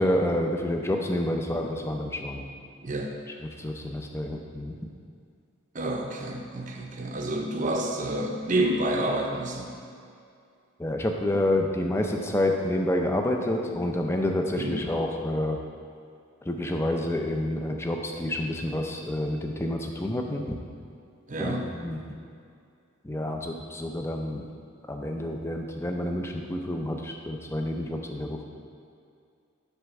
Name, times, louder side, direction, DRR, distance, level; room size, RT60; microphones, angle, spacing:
voice 1, 0.0-2.5 3.4-4.8 10.8-15.6 16.4-20.6 21.4-22.0 23.0-24.5 24.9-28.4, left 1 dB, 10° left, 2 dB, 0.4 m, -28 dB
voice 2, 2.8-3.1 5.7-9.7 14.5-14.8 21.3-21.7, right 1 dB, 35° right, 1 dB, 0.7 m, -29 dB
7.9 x 3.4 x 6.1 m, 2.4 s
head